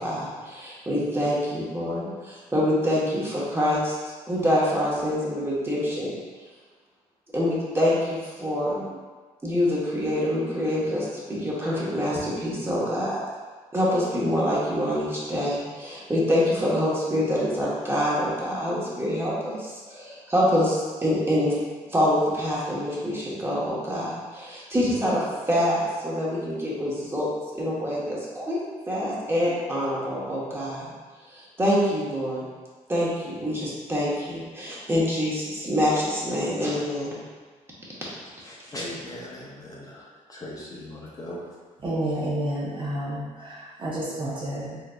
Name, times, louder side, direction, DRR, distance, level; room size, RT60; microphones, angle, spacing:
voice 1, 0.0-3.9 4.3-6.1 7.3-8.9 9.4-13.2 13.7-21.5 21.9-28.6 28.9-30.9 31.3-32.5 32.9-37.2, equal, 15° right, -7 dB, 1.1 m, -26 dB
voice 2, 38.4-41.4, left 1 dB, 25° left, -5 dB, 0.7 m, -39 dB
voice 3, 41.8-44.8, right 1 dB, 35° right, -5 dB, 0.8 m, -30 dB
4.0 x 3.8 x 2.3 m, 1.4 s
cardioid pair, 115°, 14 cm